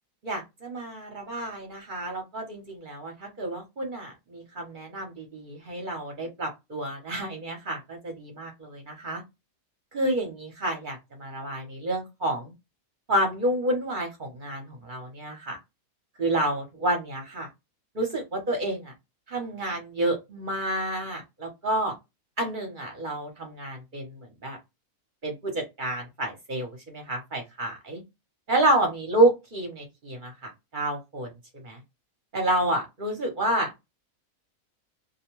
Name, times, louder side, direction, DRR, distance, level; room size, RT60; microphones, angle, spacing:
voice 1, 0.2-9.2 9.9-12.5 13.1-15.6 16.2-17.5 17.9-18.9 19.3-21.9 22.4-24.6 25.2-28.0 28.5-31.8 32.3-33.7, right 1 dB, 45° right, 2 dB, 0.8 m, -29 dB
2.4 x 2.1 x 3.0 m, 0.22 s
omnidirectional pair, 1.4 m